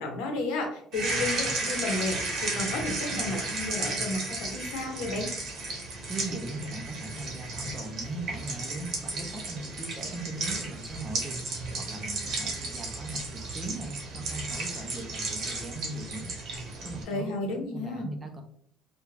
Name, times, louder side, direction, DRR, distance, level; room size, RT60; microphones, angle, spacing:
voice 1, 0.0-5.3 17.1-18.1, left 2 dB, 85° left, 2 dB, 0.7 m, -32 dB
sound 1, 0.9-17.0, right 3 dB, 45° right, 0.8 m, -34 dB
voice 2, 6.1-11.4 11.7-16.3 16.6-18.4, right 2 dB, 15° right, 3 dB, 0.4 m, -39 dB
2.4 x 2.1 x 3.1 m, 0.64 s
cardioid pair, 165°, 0 cm